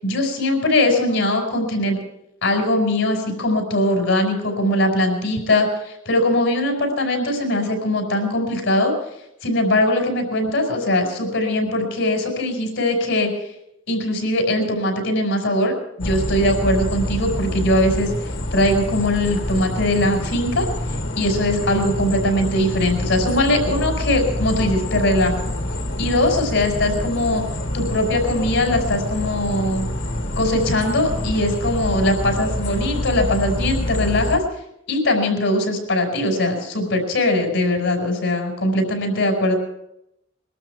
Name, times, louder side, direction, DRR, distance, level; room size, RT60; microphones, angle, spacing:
voice 1, 0.0-2.0 2.4-8.9 9.4-13.3 13.9-18.1 18.5-20.7 21.2-25.4 26.0-27.4 27.7-29.9 30.4-34.4 34.9-39.5, left 1 dB, 80° left, 3 dB, 5.2 m, -21 dB
sound 1, 16.0-34.4, left 1 dB, 65° left, 1.5 m, -26 dB
22.5 x 12.5 x 4.6 m, 0.80 s
head